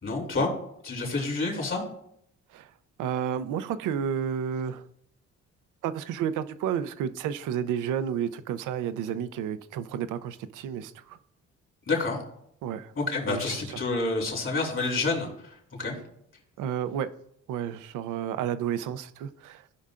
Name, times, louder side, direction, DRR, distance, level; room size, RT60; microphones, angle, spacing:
voice 1, 0.0-0.5 0.8-1.8 11.9-12.2 13.0-15.9, left 3 dB, 45° left, 2.8 m, -28 dB
voice 2, 3.0-4.9 5.8-11.2 12.6-12.9 13.3-13.6 16.6-17.1 17.5-19.7, right 8 dB, 90° right, 0.6 m, -31 dB
15.0 x 5.4 x 2.5 m
cardioid pair, 90°, 30 cm